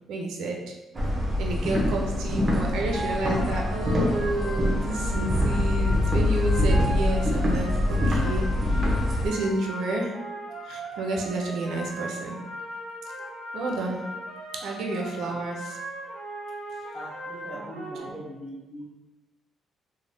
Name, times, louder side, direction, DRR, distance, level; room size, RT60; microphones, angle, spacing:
voice 1, 0.1-0.8 1.4-8.6 9.2-10.2 10.6-12.4 13.5-14.1 14.6-15.8 17.5-17.6 18.0-18.1, right 2 dB, 80° right, 1 dB, 0.4 m, -30 dB
sound 1, 0.9-9.3, left 1 dB, 35° right, 0.6 m, -24 dB
sound 2, 2.9-18.0, right 1 dB, 20° right, 1.3 m, -38 dB
voice 2, 16.9-18.8, equal, 40° left, -7 dB, 0.7 m, -41 dB
3.1 x 2.0 x 2.6 m, 1.1 s
cardioid pair, 90°, 0 cm